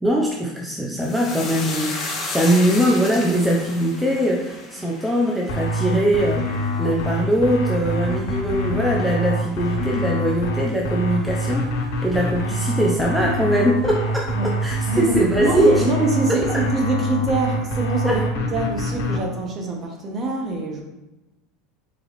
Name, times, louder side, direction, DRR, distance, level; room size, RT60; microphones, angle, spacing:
voice 1, 0.0-1.9 2.3-6.5 6.8-11.7 12.0-14.3 14.6-15.8 16.3-16.6 18.0-18.2, equal, 5° right, -2 dB, 0.5 m, -21 dB
sound 1, 1.0-9.6 9.9-10.6 10.9-11.1, left 2 dB, 25° left, 0.9 m, -34 dB
sound 2, 5.5-19.2, equal, 80° left, 1.2 m, -25 dB
voice 2, 14.9-20.8, right 2 dB, 30° right, 1 dB, 0.9 m, -24 dB
4.1 x 3.6 x 3.0 m, 1.0 s
supercardioid pair, 140°, 0 cm